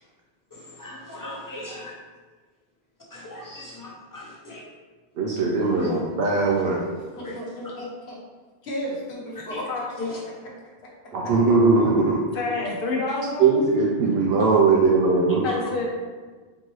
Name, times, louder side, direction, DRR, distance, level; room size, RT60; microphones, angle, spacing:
voice 1, 0.5-1.9 3.1-4.6 5.6-6.5 7.2-7.4 9.5-9.6 10.0-10.2 14.4-14.5 15.5-15.6, left 2 dB, 20° left, -5 dB, 0.8 m, -38 dB
voice 2, 5.2-6.8 11.1-12.2 13.4-15.4, right 4 dB, 70° right, -2 dB, 0.8 m, -20 dB
voice 3, 7.2-8.2 8.6-9.7, equal, 80° left, -3 dB, 1.1 m, -33 dB
voice 4, 12.3-13.7 15.4-15.9, left 3 dB, 60° left, 0 dB, 0.9 m, -28 dB
4.4 x 2.9 x 3.0 m, 1.4 s
omnidirectional pair, 1.1 m